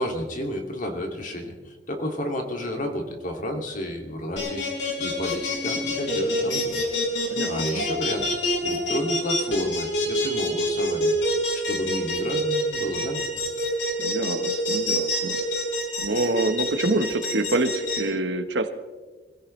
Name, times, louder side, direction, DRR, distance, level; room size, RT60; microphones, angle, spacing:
voice 1, 0.0-4.6 5.0-6.8 7.5-8.2 8.6-11.1 11.5-13.2, equal, 50° left, 2 dB, 2.5 m, -31 dB
sound 1, 4.4-18.0, left 2 dB, 85° left, 5.4 m, -26 dB
voice 2, 7.2-7.8 14.0-15.4 16.0-18.7, right 2 dB, 85° right, 8 dB, 1.3 m, -26 dB
25.5 x 16.0 x 3.3 m, 1.4 s
head